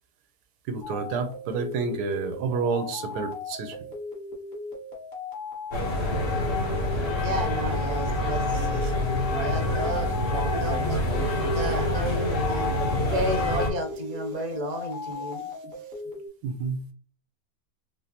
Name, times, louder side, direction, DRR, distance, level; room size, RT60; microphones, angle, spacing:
voice 1, 0.7-3.8 8.2-8.9 13.0-13.1 16.4-16.8, right 5 dB, 90° right, 7 dB, 1.2 m, -30 dB
sound 1, 0.8-16.3, left 3 dB, 30° left, 1.3 m, -38 dB
sound 2, 5.7-13.7, left 1 dB, 55° left, 1.4 m, -26 dB
voice 2, 7.2-12.7 13.0-15.4, equal, 45° right, 3 dB, 0.5 m, -33 dB
4.9 x 2.0 x 2.8 m, 0.42 s
omnidirectional pair, 1.7 m